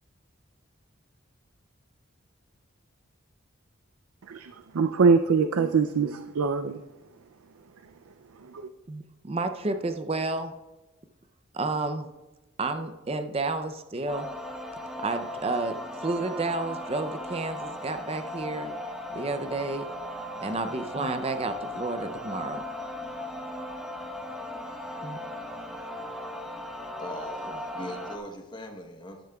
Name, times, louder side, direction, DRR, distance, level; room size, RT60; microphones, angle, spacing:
voice 1, 4.3-6.8 8.5-8.7, right 5 dB, 90° right, 8 dB, 0.5 m, -23 dB
voice 2, 8.9-10.5 11.5-12.1 12.6-14.3 15.0-18.7 19.1-19.9 20.4-22.6 25.0-25.2, right 3 dB, 30° right, 8 dB, 0.5 m, -31 dB
sound 1, 14.1-28.2, left 1 dB, 5° right, 1.0 m, -37 dB
voice 3, 26.8-29.2, left 1 dB, 20° left, 4 dB, 1.0 m, -40 dB
13.0 x 12.0 x 2.3 m, 1.1 s
head